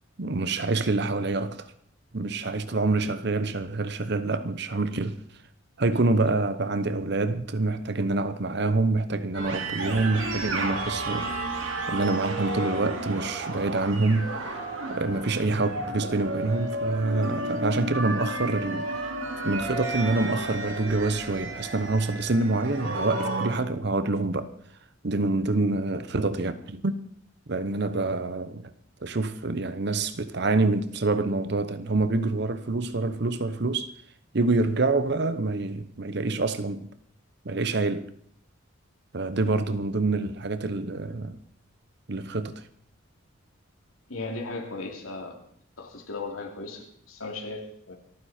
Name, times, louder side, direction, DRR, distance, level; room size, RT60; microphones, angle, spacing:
voice 1, 0.2-1.7 2.1-5.2 5.8-19.1 19.4-24.5 25.0-27.0 27.5-28.7 29.0-33.9 34.3-36.9 37.4-38.1 39.1-41.4 42.1-42.7, right 3 dB, 55° right, 0.9 m, -26 dB
sound 1, 9.3-23.5, right 2 dB, 75° right, 2.8 m, -32 dB
voice 2, 44.1-45.4 45.8-47.9, left 3 dB, 90° left, 2.9 m, -36 dB
27.5 x 9.7 x 4.4 m
head